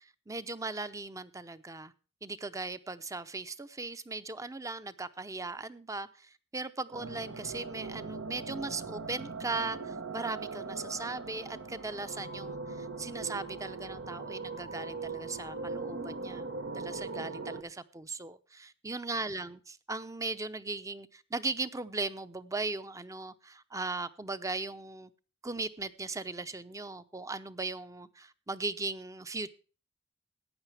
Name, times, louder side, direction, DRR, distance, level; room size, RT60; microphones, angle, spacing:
voice 1, 0.0-1.9 2.2-25.1 25.4-29.5, right 3 dB, 15° right, 0.7 m, -38 dB
sound 1, 6.9-17.6, right 3 dB, 85° right, 1.4 m, -40 dB
15.0 x 9.8 x 3.4 m
head